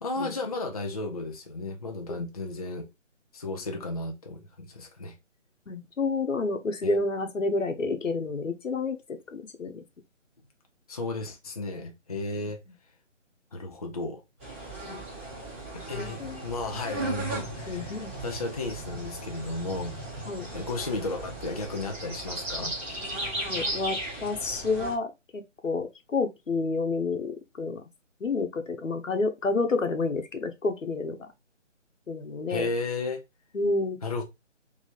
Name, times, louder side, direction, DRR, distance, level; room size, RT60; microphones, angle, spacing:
voice 1, 0.0-2.9 3.3-5.2 6.8-6.9 10.9-12.6 13.5-14.2 15.7-20.0 20.5-22.8 32.5-33.2 34.0-34.2, left 2 dB, 30° left, 0.6 m, -34 dB
voice 2, 5.7-9.8 14.8-15.0 16.0-16.4 17.2-18.1 20.3-20.5 23.5-27.8 28.2-31.3 32.1-32.7 33.5-34.0, left 3 dB, 80° left, 1.1 m, -30 dB
sound 1, 14.4-24.9, right 1 dB, 10° right, 0.8 m, -36 dB
3.3 x 3.2 x 4.1 m
figure-of-eight pair, 160°, 38 cm